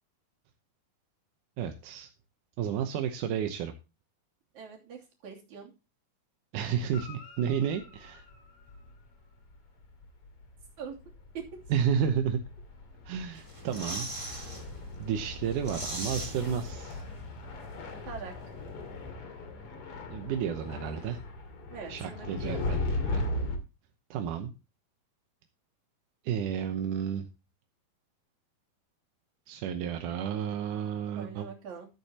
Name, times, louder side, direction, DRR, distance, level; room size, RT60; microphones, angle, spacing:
voice 1, 1.6-2.1 2.6-3.7 6.5-8.2 11.7-12.4 13.1-14.1 15.0-17.1 20.1-21.2 21.9-23.3 24.1-24.5 26.2-27.3 29.5-31.5, right 8 dB, 70° right, 6 dB, 2.2 m, -31 dB
voice 2, 4.5-5.7 10.8-11.0 11.5-11.6 18.1-18.4 21.7-22.7 31.2-31.9, right 6 dB, 55° right, -1 dB, 4.1 m, -43 dB
Guitar, 6.9-9.4 13.3-13.4, left 3 dB, 85° left, 4.6 m, -52 dB
sound 1, 7.8-9.1 9.4-9.5 9.8-23.6, left 2 dB, 45° left, 2.8 m, -38 dB
sound 2, 13.3-14.6 15.0-15.1 15.4-17.2 17.4-17.5, right 1 dB, 10° right, 1.8 m, -39 dB
14.5 x 8.7 x 2.9 m, 0.29 s
omnidirectional pair, 4.3 m